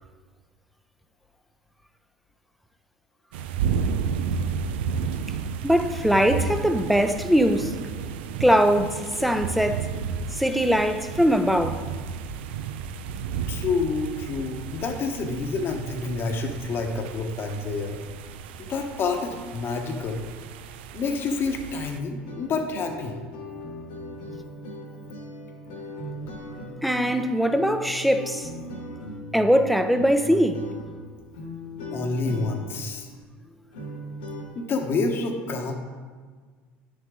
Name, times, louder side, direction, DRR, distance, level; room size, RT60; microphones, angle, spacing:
sound 1, 3.3-22.0, right 6 dB, 85° right, 0.5 m, -32 dB
voice 1, 5.6-7.8 8.4-9.9 10.3-11.8 26.8-28.5 29.3-30.7, equal, ahead, 0.6 m, -21 dB
voice 2, 13.5-18.0 18.6-20.2 20.9-23.1 31.9-33.1 34.5-35.7, left 4 dB, 45° left, 1.0 m, -28 dB
sound 2, 22.2-34.5, left 1 dB, 85° left, 1.7 m, -38 dB
9.6 x 6.8 x 3.7 m
supercardioid pair, 90°, 6 cm